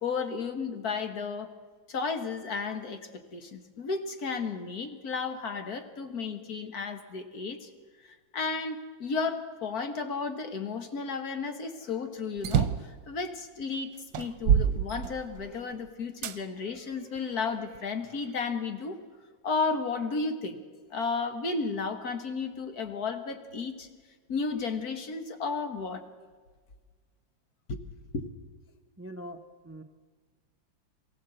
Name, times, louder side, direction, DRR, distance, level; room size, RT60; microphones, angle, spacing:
voice 1, 0.0-1.5 1.9-7.7 8.0-13.9 14.2-19.0 19.4-20.6 20.9-23.9 24.3-26.0 27.7-27.8 28.1-28.3, left 4 dB, 55° left, 7 dB, 1.8 m, -33 dB
sound 1, 12.4-12.9 13.6-13.7 14.1-15.6 16.2-16.4 17.1-18.2, right 9 dB, 75° right, 1.4 m, -27 dB
voice 2, 29.0-29.4 29.6-29.8, equal, 20° right, 7 dB, 0.3 m, -41 dB
23.5 x 15.0 x 7.8 m, 1.5 s
omnidirectional pair, 2.1 m